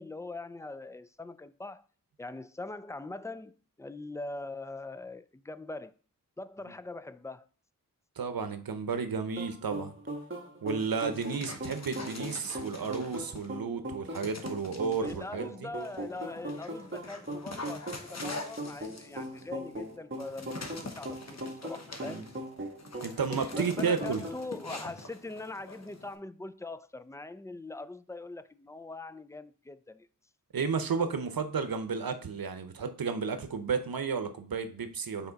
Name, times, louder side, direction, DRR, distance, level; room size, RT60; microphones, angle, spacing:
voice 1, 0.0-1.8 2.2-5.9 6.4-7.5 15.0-22.2 23.5-30.1, left 2 dB, 10° left, 0.4 m, -42 dB
voice 2, 8.2-9.9 10.6-15.7 22.0-22.3 23.0-24.2 30.5-35.3, right 5 dB, 90° right, 0.7 m, -32 dB
sound 1, 9.4-24.5, right 1 dB, 35° right, 1.3 m, -40 dB
Dog, 10.7-13.6 14.1-15.2 15.8-26.2, left 2 dB, 50° left, 1.0 m, -44 dB
5.7 x 4.3 x 3.9 m
wide cardioid pair, 50°, 34 cm